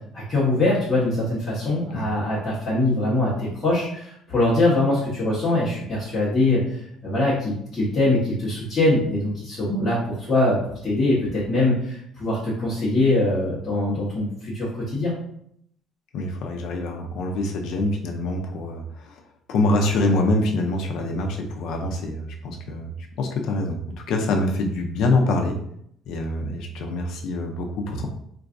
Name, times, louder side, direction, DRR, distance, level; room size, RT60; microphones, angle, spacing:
voice 1, 0.1-6.8 7.0-15.1, left 2 dB, 10° left, -11 dB, 0.9 m, -23 dB
voice 2, 16.1-19.2 19.5-23.8 24.1-25.6 26.1-28.1, left 2 dB, 60° left, 3 dB, 0.4 m, -25 dB
3.8 x 2.3 x 2.5 m, 0.70 s
cardioid pair, 170°, 0 cm